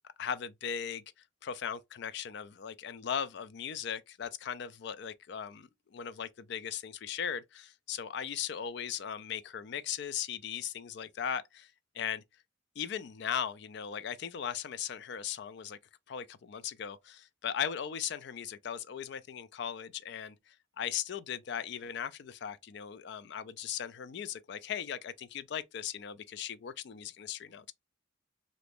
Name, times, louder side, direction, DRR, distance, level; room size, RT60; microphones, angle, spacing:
voice 1, 0.2-1.0 1.4-12.2 12.8-15.8 16.1-27.7, left 8 dB, 60° left, 0.3 m, -38 dB
2.9 x 2.5 x 3.4 m
head